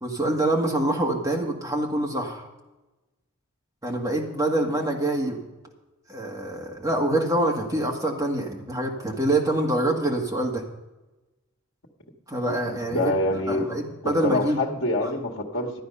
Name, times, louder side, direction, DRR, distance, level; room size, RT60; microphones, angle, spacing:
voice 1, 0.0-2.5 3.8-5.4 6.1-10.6 12.3-13.1 13.5-14.6 15.0-15.1, right 1 dB, 15° right, -1 dB, 1.8 m, -25 dB
voice 2, 12.9-13.7 14.0-15.8, left 2 dB, 75° left, 0 dB, 1.6 m, -26 dB
13.0 x 9.4 x 5.6 m, 1.1 s
head